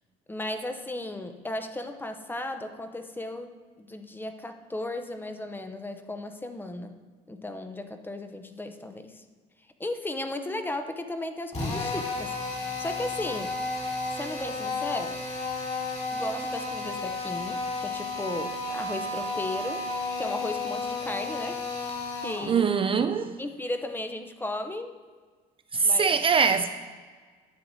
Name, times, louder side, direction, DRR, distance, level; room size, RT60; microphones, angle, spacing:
voice 1, 0.3-7.0 7.3-9.2 9.8-12.3 12.8-13.6 14.1-15.2 16.1-19.9 20.2-21.6 22.2-22.7 23.4-25.0 25.8-26.2, left 2 dB, 10° left, 0.6 m, -35 dB
Drill, 11.5-22.5, left 3 dB, 40° left, 2.4 m, -32 dB
voice 2, 22.5-23.3 25.7-26.7, right 5 dB, 30° right, 0.3 m, -23 dB
10.5 x 7.6 x 2.6 m
cardioid pair, 110°, 17 cm